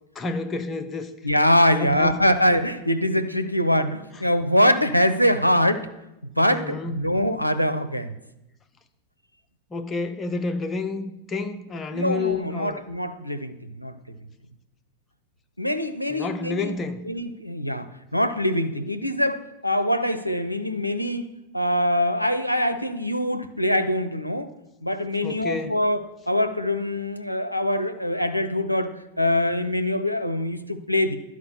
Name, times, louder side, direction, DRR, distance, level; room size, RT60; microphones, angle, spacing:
voice 1, 0.1-1.1 1.7-2.2 6.4-7.1 9.7-12.8 16.1-17.0 25.2-25.8, left 3 dB, 20° left, 6 dB, 0.8 m, -30 dB
voice 2, 1.2-5.9 6.4-8.1 11.9-13.9 15.6-16.8 17.1-21.2 21.5-24.5 24.8-31.2, left 1 dB, 90° left, 10 dB, 0.5 m, -23 dB
11.5 x 4.8 x 6.9 m, 0.92 s
figure-of-eight pair, 90°, 0 cm